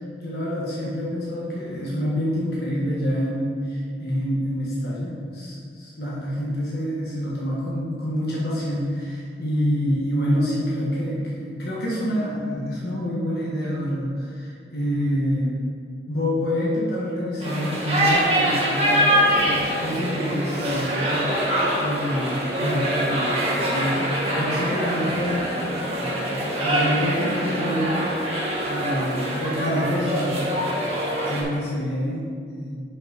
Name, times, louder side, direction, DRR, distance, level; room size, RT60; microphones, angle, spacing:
voice 1, 0.2-15.5 16.1-28.4 28.7-30.6 31.3-32.8, equal, 60° left, -6 dB, 1.4 m, -27 dB
sound 1, 17.4-31.4, equal, 35° right, 1.4 m, -24 dB
7.3 x 5.2 x 5.2 m, 2.2 s
head